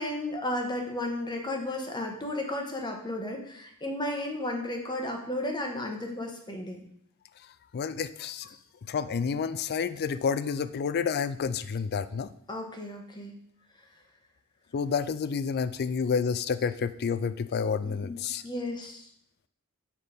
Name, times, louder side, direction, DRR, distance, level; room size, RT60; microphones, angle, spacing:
voice 1, 0.0-6.8 8.5-8.6 12.5-13.3 16.6-16.7 17.8-19.1, left 1 dB, 20° left, 2 dB, 1.1 m, -34 dB
voice 2, 7.7-8.5 8.8-12.3 14.7-18.4, left 6 dB, 45° left, 14 dB, 0.4 m, -29 dB
7.4 x 4.2 x 5.0 m, 0.68 s
head